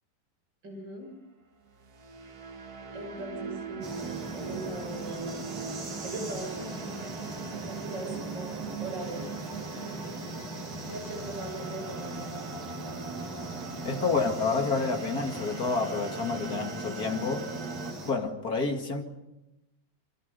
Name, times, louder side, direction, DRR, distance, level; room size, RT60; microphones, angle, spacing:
voice 1, 0.6-1.1 2.9-5.4 6.0-7.3 7.7-9.4 10.8-12.3, right 2 dB, 30° right, 2 dB, 7.2 m, -40 dB
sound 1, 1.7-17.9, right 4 dB, 50° right, 1.1 m, -41 dB
sound 2, 3.8-18.1, right 2 dB, 80° right, 6.5 m, -40 dB
voice 2, 13.8-17.5 18.0-19.0, left 4 dB, 35° left, 3 dB, 2.0 m, -29 dB
29.0 x 24.0 x 5.5 m, 0.92 s
omnidirectional pair, 4.0 m